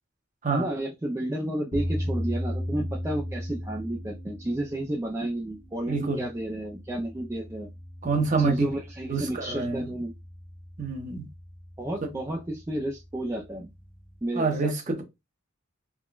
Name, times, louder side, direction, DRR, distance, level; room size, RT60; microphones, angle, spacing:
voice 1, 0.5-7.7 8.4-10.1 11.8-13.7 14.2-14.7, right 1 dB, 15° right, 0.4 m, -32 dB
sound 1, 1.7-14.2, equal, 30° left, 0.8 m, -37 dB
voice 2, 5.9-6.2 8.0-8.7 9.1-9.9 10.8-11.3 12.0-12.2 14.3-15.0, right 4 dB, 40° right, 0.8 m, -27 dB
3.6 x 2.2 x 2.4 m
head